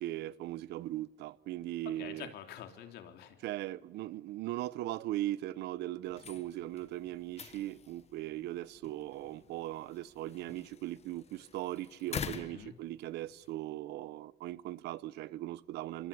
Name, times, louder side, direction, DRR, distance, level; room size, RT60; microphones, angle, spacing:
voice 1, 0.0-2.3 3.4-16.1, right 15 dB, 80° right, 0.9 m, -39 dB
voice 2, 1.9-3.4 12.2-12.7, left 10 dB, 75° left, 3.3 m, -47 dB
sound 1, 6.0-13.5, left 7 dB, 40° left, 1.4 m, -47 dB
26.5 x 25.5 x 8.5 m
cardioid pair, 110°, 17 cm